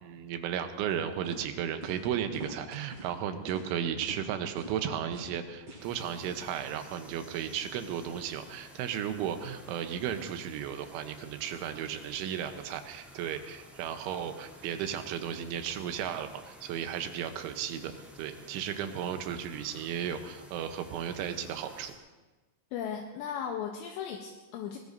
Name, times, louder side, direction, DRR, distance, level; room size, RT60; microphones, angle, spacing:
voice 1, 0.0-17.9 18.2-21.9, right 9 dB, 90° right, 7 dB, 3.4 m, -34 dB
sound 1, 0.9-1.0 1.2-1.4 1.8-2.1 2.3-3.1 3.5-3.7 4.0-4.2 4.6-4.8 5.1-5.3 5.7-5.9 6.2-6.3, right 2 dB, 45° right, 5.6 m, -44 dB
sound 2, 5.8-21.9, equal, ahead, 1.7 m, -53 dB
voice 2, 22.7-24.8, left 8 dB, 80° left, 2 dB, 3.0 m, -36 dB
21.5 x 19.5 x 2.7 m, 1.2 s
omnidirectional pair, 5.3 m